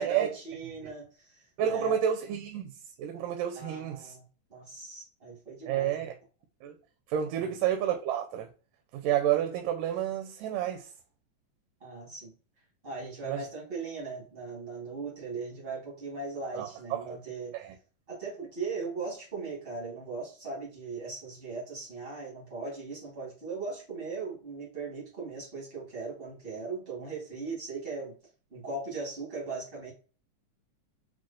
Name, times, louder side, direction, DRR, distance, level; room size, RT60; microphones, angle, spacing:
voice 1, 0.0-2.0 3.5-6.1 7.3-7.5 11.8-12.3 12.8-17.5 18.1-28.1 28.5-29.9, right 4 dB, 65° right, 0.5 m, -38 dB
voice 2, 1.6-2.7 3.0-4.1 5.7-6.1 6.6-6.7 7.1-8.5 8.9-10.9 13.2-13.4 16.5-17.2 17.5-17.8, right 10 dB, 85° right, 2.1 m, -30 dB
6.1 x 2.1 x 2.4 m
omnidirectional pair, 3.8 m